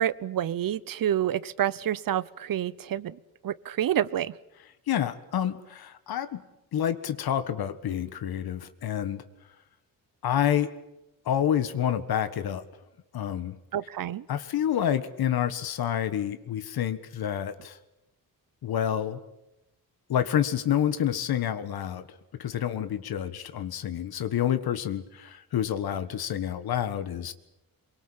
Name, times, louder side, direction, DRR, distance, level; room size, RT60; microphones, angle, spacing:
voice 1, 0.0-4.4 13.7-14.3, right 11 dB, 65° right, 20 dB, 0.9 m, -28 dB
voice 2, 4.9-6.4 6.7-9.2 10.2-10.7 11.2-12.6 13.1-13.6 14.3-17.8 18.6-19.2 20.1-22.0 22.3-27.3, left 10 dB, 80° left, 11 dB, 1.6 m, -28 dB
23.5 x 23.5 x 8.8 m, 0.90 s
cardioid pair, 120°, 36 cm